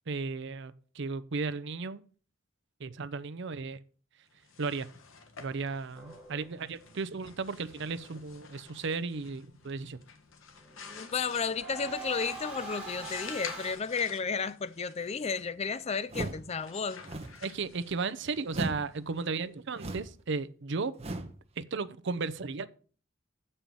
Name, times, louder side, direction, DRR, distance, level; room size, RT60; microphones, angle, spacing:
voice 1, 0.1-2.0 2.8-3.8 4.6-4.9 5.4-10.0 17.4-20.9 21.6-22.7, right 4 dB, 60° right, 0.6 m, -35 dB
sound 1, 4.3-20.0, left 5 dB, 90° left, 1.4 m, -50 dB
sound 2, 5.9-6.8 10.6-13.7, right 2 dB, 5° right, 3.4 m, -43 dB
voice 2, 10.8-17.0, left 5 dB, 30° left, 0.5 m, -33 dB
sound 3, 16.1-16.5 17.0-17.4 18.5-18.9 19.7-20.2 21.0-21.4, right 2 dB, 30° right, 1.1 m, -36 dB
7.5 x 5.6 x 6.9 m
head